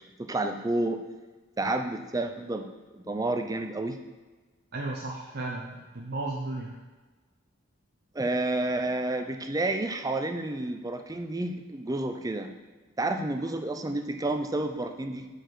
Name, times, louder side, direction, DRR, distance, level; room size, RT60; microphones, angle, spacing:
voice 1, 0.2-1.0 1.6-2.7 2.9-4.0 8.1-12.5 13.0-15.3, right 2 dB, 15° right, 6 dB, 0.5 m, -30 dB
voice 2, 4.7-6.7, right 2 dB, 50° right, -2 dB, 0.7 m, -34 dB
7.9 x 4.2 x 6.2 m, 1.3 s
head